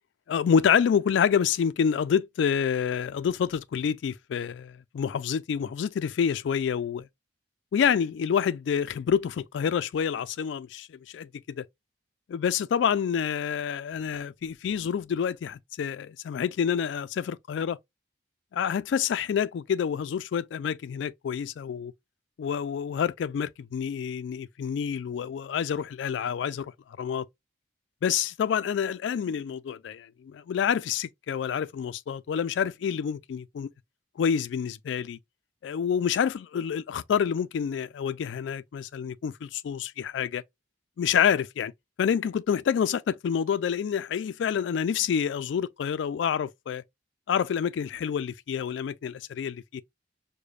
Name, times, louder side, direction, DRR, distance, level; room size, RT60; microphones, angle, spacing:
voice 1, 0.3-7.1 7.7-11.3 11.6-11.7 12.3-17.8 18.5-21.9 22.4-26.7 27.0-27.3 28.0-33.7 34.2-35.2 35.6-40.4 41.0-41.7 42.0-46.8 47.3-49.8, left 7 dB, 75° left, 0.3 m, -28 dB
4.9 x 2.1 x 2.4 m
head